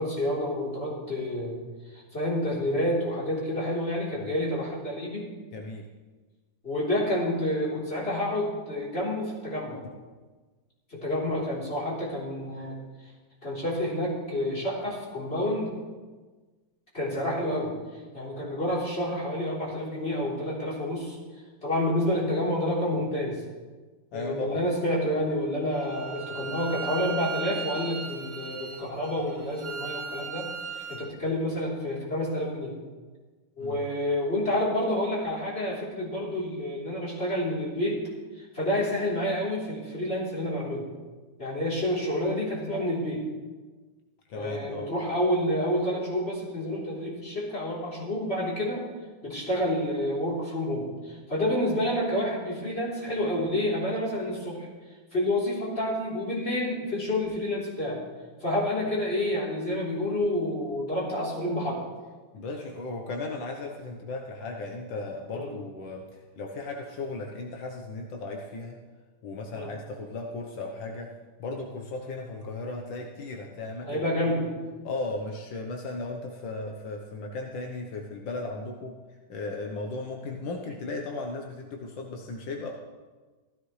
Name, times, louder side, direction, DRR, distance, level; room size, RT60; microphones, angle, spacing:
voice 1, 0.0-1.6 1.9-5.3 6.6-9.8 10.9-12.7 13.4-15.7 16.9-17.7 18.1-21.2 21.6-23.4 24.1-30.5 30.7-32.7 33.6-38.0 38.4-40.9 41.4-43.2 44.3-48.8 49.2-54.7 55.1-58.0 58.4-61.9 65.3-65.5 69.5-69.7 73.9-74.5, left 1 dB, 30° left, -6 dB, 3.9 m, -29 dB
voice 2, 5.5-5.9 24.1-24.6 33.6-33.8 44.3-44.9 62.3-68.8 69.2-71.1 71.4-74.0 74.8-78.9 79.3-82.7, left 3 dB, 80° left, 1 dB, 1.8 m, -36 dB
Bowed string instrument, 25.7-31.1, right 5 dB, 80° right, 2.3 m, -37 dB
15.5 x 14.0 x 3.2 m, 1.3 s
omnidirectional pair, 2.0 m